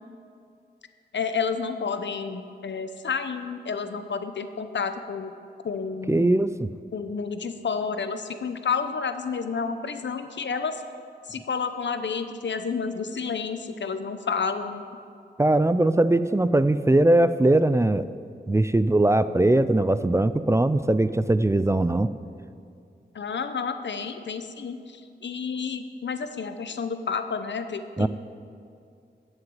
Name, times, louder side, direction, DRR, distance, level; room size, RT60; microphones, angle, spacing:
voice 1, 1.1-5.3 5.6-6.3 6.9-10.8 11.3-14.8 23.1-28.1, left 5 dB, 85° left, 9 dB, 0.8 m, -30 dB
voice 2, 6.1-6.7 15.4-18.1 18.5-22.1 28.0-28.1, right 1 dB, 15° right, 13 dB, 0.4 m, -20 dB
14.5 x 6.5 x 8.7 m, 2.4 s
wide cardioid pair, 95°, 18 cm